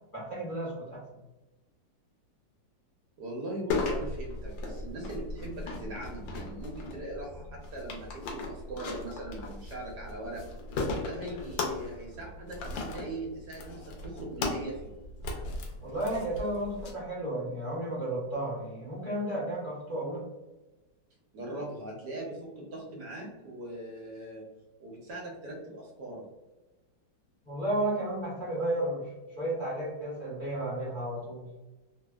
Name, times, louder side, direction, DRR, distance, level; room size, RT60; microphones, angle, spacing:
voice 1, 0.1-1.0 15.8-20.2 27.4-29.1 29.4-31.5, right 1 dB, 35° left, -9 dB, 0.9 m, -33 dB
voice 2, 3.2-10.4 11.0-14.9 21.3-24.5 24.8-26.2, right 1 dB, 70° right, -2 dB, 1.2 m, -40 dB
sound 1, 3.7-16.9, left 3 dB, 85° left, 1.3 m, -37 dB
3.3 x 2.0 x 2.2 m, 1.1 s
omnidirectional pair, 2.0 m